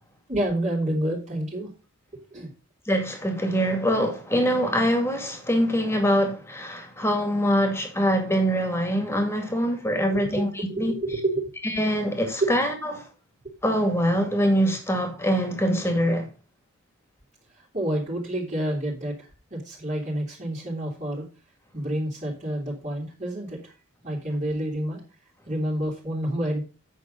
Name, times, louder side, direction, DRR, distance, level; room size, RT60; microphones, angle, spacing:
voice 1, 0.3-1.7 2.3-2.5 10.1-11.5 12.4-12.5 17.7-19.1 19.5-21.2 21.7-23.7 24.0-25.0 25.5-26.6, right 1 dB, 35° right, 2.7 m, -28 dB
voice 2, 2.9-10.9 11.6-13.0 13.6-16.3, equal, 10° left, 2.1 m, -24 dB
8.6 x 6.1 x 5.1 m
head